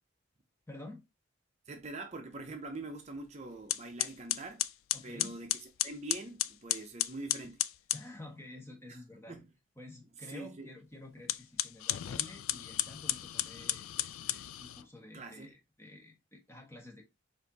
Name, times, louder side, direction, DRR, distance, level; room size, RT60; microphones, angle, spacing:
voice 1, 0.7-1.0 4.9-5.4 7.9-9.4 9.8-17.1, left 2 dB, 10° left, 0.9 m, -50 dB
voice 2, 1.7-4.6 5.0-7.6 8.9-9.0 9.3-9.4 10.3-10.7 15.1-15.5, right 2 dB, 35° right, 0.6 m, -44 dB
sound 1, 3.2-3.3 3.7-8.1 11.2-14.8, left 14 dB, 90° left, 0.3 m, -34 dB
4.9 x 2.6 x 4.0 m
head